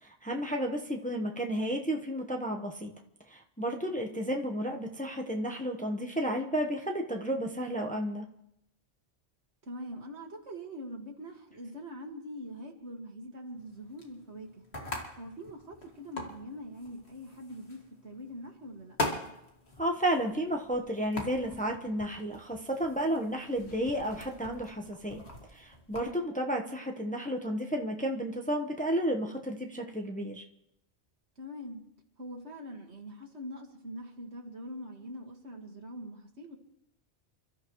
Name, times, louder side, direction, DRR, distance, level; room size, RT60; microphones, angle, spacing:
voice 1, 0.0-2.9 3.3-8.2 19.8-25.2 25.5-30.4, equal, 5° left, 2 dB, 1.1 m, -32 dB
voice 2, 9.7-14.6 15.2-19.0 31.4-31.9 32.2-36.6, equal, 70° right, 2 dB, 2.3 m, -43 dB
sound 1, 13.6-26.1, left 2 dB, 65° left, 2.5 m, -42 dB
29.0 x 13.0 x 3.2 m, 0.79 s
omnidirectional pair, 1.2 m